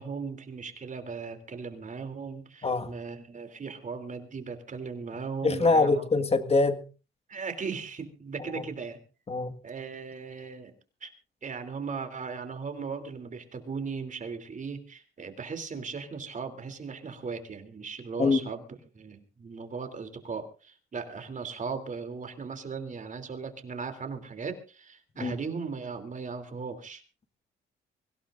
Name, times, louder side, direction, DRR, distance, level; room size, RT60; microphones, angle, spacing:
voice 1, 0.0-6.1 7.3-9.0 9.6-10.7 11.0-11.1 11.4-18.6 18.9-27.0, right 5 dB, 40° right, 7 dB, 3.2 m, -37 dB
voice 2, 5.4-6.8 8.5-8.6 9.3-9.5 18.2-18.4 25.2-25.3, left 3 dB, 30° left, 10 dB, 1.7 m, -24 dB
24.5 x 16.5 x 2.6 m, 0.33 s
cardioid pair, 90°, 20 cm